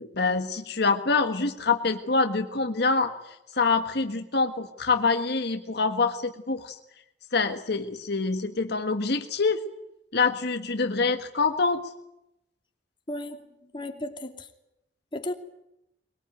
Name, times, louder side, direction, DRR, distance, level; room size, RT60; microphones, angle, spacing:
voice 1, 0.0-3.1 3.5-6.8 7.3-9.6 10.1-11.8, left 4 dB, 60° left, 6 dB, 1.5 m, -25 dB
voice 2, 13.1-14.5 15.1-15.3, left 1 dB, 25° left, 4 dB, 2.8 m, -35 dB
23.0 x 22.0 x 9.2 m, 0.85 s
head